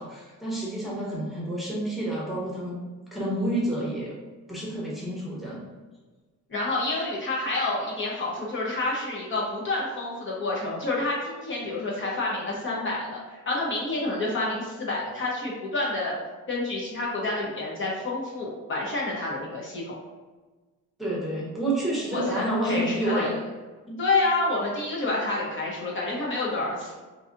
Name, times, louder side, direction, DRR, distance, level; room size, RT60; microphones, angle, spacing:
voice 1, 0.0-2.8 3.1-4.1 4.5-5.6 21.0-23.4 23.9-24.0, right 1 dB, ahead, -6 dB, 0.9 m, -29 dB
voice 2, 6.5-16.1 16.5-19.9 22.1-23.3 24.0-26.9, left 2 dB, 40° left, -4 dB, 0.8 m, -28 dB
4.7 x 2.7 x 2.5 m, 1.3 s
cardioid pair, 145°, 31 cm